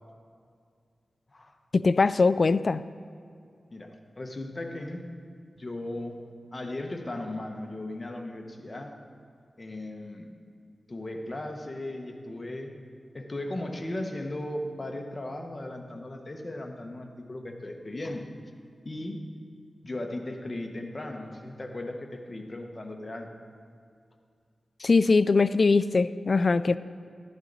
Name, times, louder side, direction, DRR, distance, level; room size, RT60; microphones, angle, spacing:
voice 1, 1.7-2.8 24.8-26.8, left 4 dB, 55° left, 15 dB, 0.3 m, -22 dB
voice 2, 3.7-5.0 5.6-9.0 9.6-10.3 10.9-12.8 13.1-18.3 18.8-19.3 19.8-23.3, left 1 dB, 35° left, 3 dB, 1.2 m, -37 dB
13.0 x 11.0 x 4.1 m, 2.3 s
wide cardioid pair, 70°, 0 cm